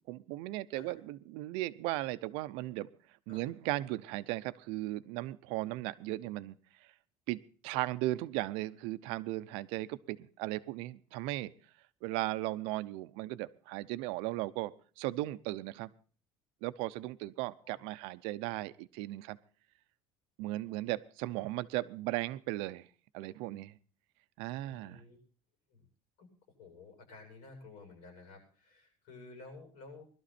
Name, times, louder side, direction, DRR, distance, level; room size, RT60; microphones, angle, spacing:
voice 1, 0.1-2.9 3.3-6.6 7.3-11.5 12.0-15.9 16.6-19.4 20.4-22.9 23.1-23.8 24.4-25.0, right 17 dB, 75° right, 15 dB, 0.7 m, -37 dB
voice 2, 24.6-25.2 25.7-25.9 26.2-26.3 26.6-30.0, left 3 dB, 70° left, 3 dB, 7.7 m, -53 dB
20.5 x 12.5 x 4.3 m, 0.42 s
cardioid pair, 170°, 9 cm